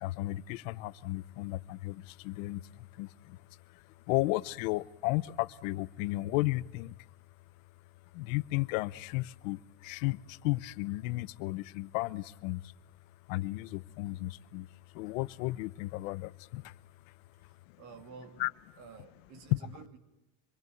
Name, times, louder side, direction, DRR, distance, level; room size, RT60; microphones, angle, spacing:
voice 1, 0.0-3.4 3.7-7.0 8.1-12.7 13.3-14.7 14.9-16.8 18.4-18.5 19.5-19.6, left 19 dB, 60° left, 0.9 m, -34 dB
voice 2, 17.4-18.4 18.8-20.0, right 5 dB, 50° right, 3.0 m, -51 dB
26.0 x 22.0 x 9.4 m
cardioid pair, 175°, 44 cm